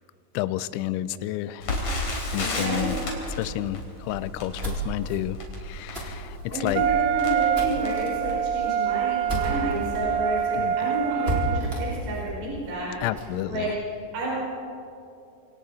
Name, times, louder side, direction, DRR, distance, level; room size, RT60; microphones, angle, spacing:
voice 1, 0.3-1.7 2.3-3.0 3.3-6.8 10.5-10.9 13.0-13.7, left 14 dB, 80° left, 14 dB, 2.8 m, -30 dB
Crackle, 1.6-8.6 9.2-9.3 9.6-9.8 10.4-10.7 10.9-11.0, left 2 dB, 35° left, 4.1 m, -33 dB
voice 2, 2.3-3.0 6.5-13.0 13.5-13.7 14.1-14.3, right 1 dB, 60° right, -6 dB, 6.8 m, -30 dB
sound 1, 4.3-10.0 10.4-10.5 10.7-10.8 11.2-13.4, right 2 dB, 10° right, 3.8 m, -33 dB
Wind instrument woodwind instrument, 6.8-12.0, right 9 dB, 80° right, 2.7 m, -26 dB
27.5 x 25.0 x 4.2 m, 2.6 s
omnidirectional pair, 5.8 m